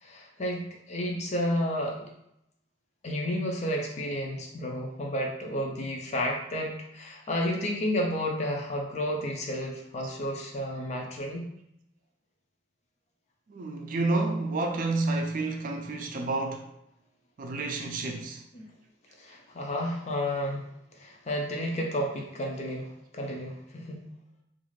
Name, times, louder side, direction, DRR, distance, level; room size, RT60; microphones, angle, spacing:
voice 1, 0.0-2.1 3.0-11.5 18.5-18.7 19.2-20.6 20.9-24.1, equal, 40° left, 0.5 m, -31 dB
voice 2, 13.5-16.7 17.4-18.5, right 2 dB, 50° right, 0.4 m, -30 dB
2.5 x 2.4 x 3.1 m
head